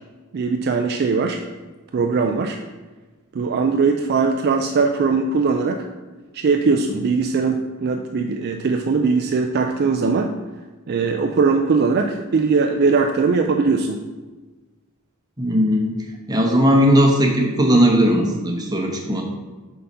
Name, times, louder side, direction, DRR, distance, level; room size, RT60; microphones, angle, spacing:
voice 1, 0.3-1.4 1.9-2.6 3.3-5.9 6.3-10.4 10.9-14.0, right 4 dB, 45° right, 4 dB, 0.4 m, -20 dB
voice 2, 15.4-15.9 16.3-19.2, equal, 20° right, 0 dB, 1.0 m, -17 dB
5.6 x 4.1 x 5.4 m, 1.3 s
head